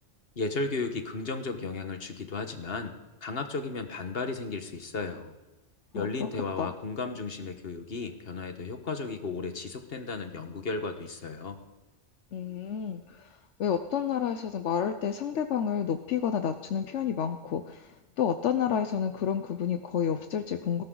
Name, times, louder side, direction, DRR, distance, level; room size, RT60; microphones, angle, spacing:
voice 1, 0.4-2.9 3.2-5.4 5.9-11.6, left 3 dB, 55° left, 7 dB, 1.6 m, -34 dB
voice 2, 5.9-6.3 6.6-6.7 12.3-20.8, left 8 dB, 80° left, 8 dB, 1.1 m, -30 dB
19.5 x 17.5 x 3.9 m, 1.1 s
omnidirectional pair, 1.2 m